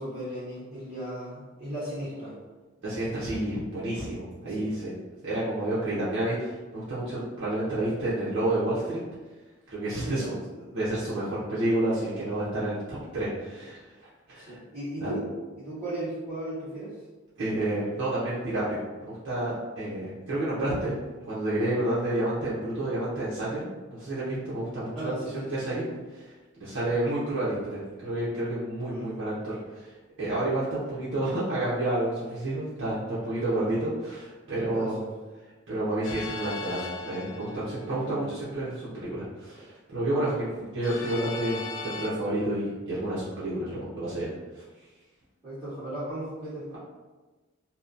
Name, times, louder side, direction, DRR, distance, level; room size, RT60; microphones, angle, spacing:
voice 1, 0.0-2.4 3.0-3.1 4.4-4.7 10.0-10.4 14.3-15.3 15.6-17.0 24.9-25.5 28.8-29.1 34.7-35.1 37.8-38.3 40.5-40.7 45.4-46.7, right 1 dB, 20° right, -17 dB, 1.4 m, -36 dB
voice 2, 2.8-5.0 5.2-9.0 9.7-10.3 10.7-14.6 15.0-15.1 17.4-20.9 21.2-23.6 23.9-26.3 26.6-29.9 30.2-35.0 35.7-41.6 42.0-44.6, right 1 dB, 60° right, -10 dB, 0.7 m, -30 dB
sound 1, 36.0-38.1 40.8-42.1, left 4 dB, 65° left, 0.4 m, -38 dB
2.7 x 2.1 x 2.5 m, 1.2 s
head